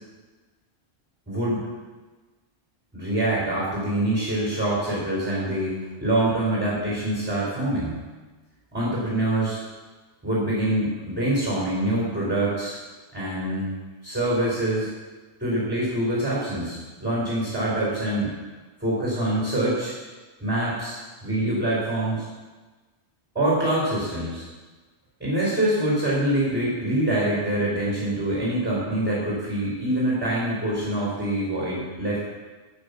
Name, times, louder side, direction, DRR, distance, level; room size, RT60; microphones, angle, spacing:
voice 1, 1.3-1.7 2.9-8.0 8.7-9.6 10.2-12.8 13.1-13.7 14.0-14.9 15.4-18.3 18.8-19.9 20.4-22.3 23.3-24.5 25.2-32.3, right 1 dB, 10° right, -6 dB, 4.4 m, -25 dB
13.5 x 6.3 x 6.9 m, 1.3 s
omnidirectional pair, 1.1 m